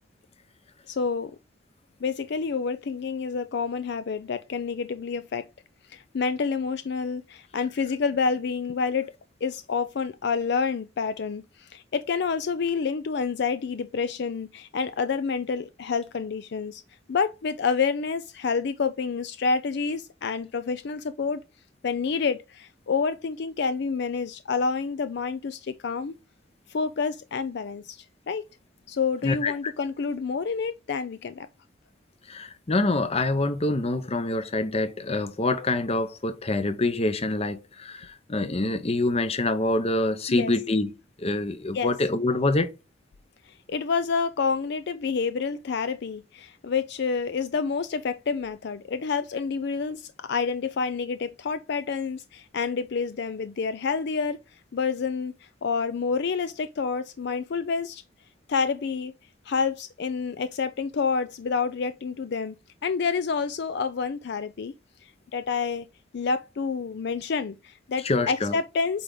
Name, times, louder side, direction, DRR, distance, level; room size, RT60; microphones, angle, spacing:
voice 1, 0.9-1.4 2.0-5.5 5.9-9.1 9.4-16.8 17.1-21.4 21.8-26.2 26.7-28.4 28.9-31.5 40.3-40.5 41.7-41.9 43.7-54.4 54.7-58.0 58.5-59.1 59.5-62.6 62.8-64.7 65.0-65.9 66.1-69.0, left 5 dB, 60° left, 0.4 m, -28 dB
voice 2, 32.3-40.9 41.2-42.7 68.0-68.5, left 2 dB, 35° left, 0.7 m, -26 dB
8.4 x 3.4 x 3.8 m
head